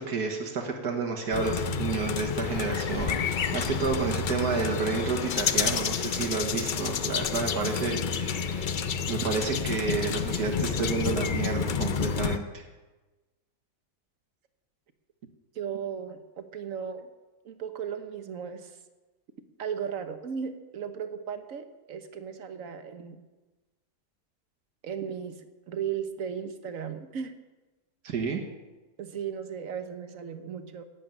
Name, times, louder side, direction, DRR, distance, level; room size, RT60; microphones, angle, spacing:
voice 1, 0.0-12.6 28.0-28.4, right 4 dB, 85° right, 1 dB, 1.9 m, -30 dB
sound 1, 1.3-12.4, left 6 dB, 80° left, 0.4 m, -29 dB
voice 2, 15.5-17.1 17.4-18.7 19.6-23.2 24.8-27.3 29.0-30.8, right 7 dB, 60° right, 9 dB, 1.4 m, -36 dB
11.0 x 8.4 x 9.0 m, 1.2 s
omnidirectional pair, 1.6 m